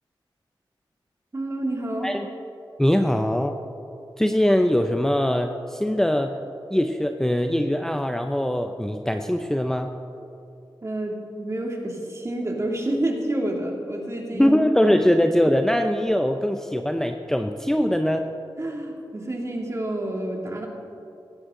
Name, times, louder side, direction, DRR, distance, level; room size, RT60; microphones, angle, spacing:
voice 1, 1.3-2.2 10.8-14.5 14.9-15.0 18.6-20.7, right 1 dB, 35° right, 0 dB, 2.5 m, -29 dB
voice 2, 2.8-3.6 4.2-6.4 6.7-9.9 14.3-18.3, equal, 5° left, 5 dB, 0.6 m, -22 dB
17.0 x 14.5 x 3.8 m, 2.7 s
wide cardioid pair, 75°, 9 cm